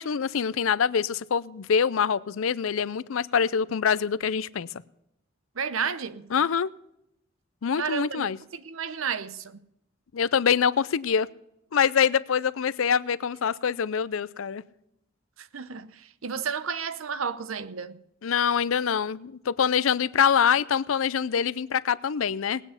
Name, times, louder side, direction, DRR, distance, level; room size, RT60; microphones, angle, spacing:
voice 1, 0.0-4.7 6.3-6.7 7.6-8.4 10.1-11.3 11.7-14.6 18.2-22.6, left 7 dB, 85° left, 0.5 m, -25 dB
voice 2, 5.6-6.3 7.8-9.6 15.4-18.0, right 6 dB, 90° right, 0.8 m, -32 dB
19.0 x 9.1 x 5.7 m
head